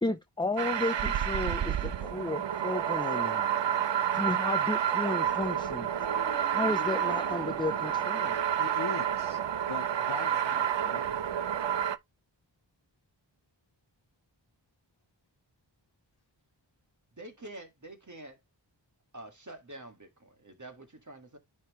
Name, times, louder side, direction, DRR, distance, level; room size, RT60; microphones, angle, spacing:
voice 1, 0.0-3.4 4.1-5.9 6.5-8.4, left 2 dB, 10° left, 0.5 m, -33 dB
sound 1, 0.6-12.0, right 9 dB, 70° right, 0.6 m, -29 dB
Marimba xylophone, 6.0-8.7, left 4 dB, 30° left, 0.9 m, -48 dB
voice 2, 8.3-9.4 9.7-11.2, left 5 dB, 60° left, 0.9 m, -42 dB
voice 3, 17.1-18.4 19.1-21.4, right 1 dB, 40° right, 1.8 m, -47 dB
10.0 x 3.5 x 3.1 m
wide cardioid pair, 60°, 45 cm